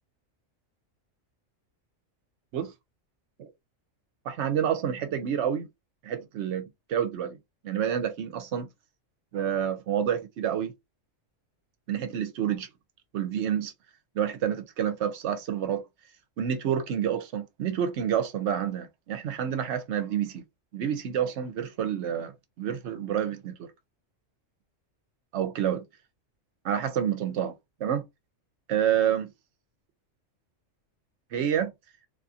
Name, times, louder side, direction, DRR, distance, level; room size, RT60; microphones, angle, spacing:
voice 1, 4.3-5.7 6.0-7.4 7.6-8.7 9.3-10.7 11.9-12.7 13.1-13.7 14.2-15.8 16.4-20.4 20.7-23.7 25.3-25.8 26.6-27.5 27.8-28.0 28.7-29.3 31.3-31.7, right 9 dB, 70° right, 0.8 m, -28 dB
2.5 x 2.4 x 2.6 m
omnidirectional pair, 1.3 m